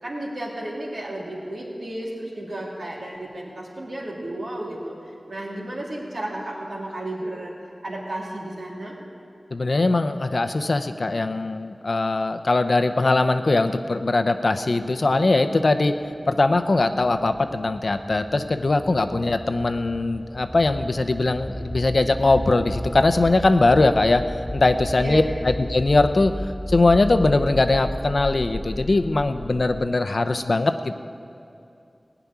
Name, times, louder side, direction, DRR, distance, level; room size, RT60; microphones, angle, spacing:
voice 1, 0.0-4.9 5.3-7.5 7.8-8.9 24.9-25.2, right 1 dB, 80° right, -3 dB, 2.6 m, -33 dB
voice 2, 9.5-15.9 16.3-24.2 24.5-26.3 26.7-31.0, left 2 dB, 65° left, 9 dB, 0.6 m, -21 dB
sound 1, 14.6-29.9, equal, 10° left, 1.3 m, -35 dB
17.0 x 5.9 x 9.6 m, 2.6 s
wide cardioid pair, 55°, 0 cm